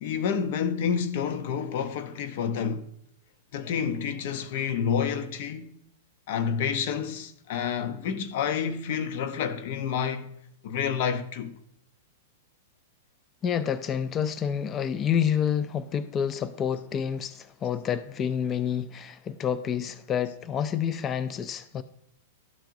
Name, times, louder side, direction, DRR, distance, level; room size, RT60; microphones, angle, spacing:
voice 1, 0.0-2.9 3.5-5.8 6.3-10.3 10.6-11.6, left 7 dB, 60° left, 0.7 m, -29 dB
voice 2, 13.4-21.8, left 8 dB, 25° left, 0.3 m, -28 dB
12.0 x 4.5 x 2.6 m
hypercardioid pair, 125°, 0 cm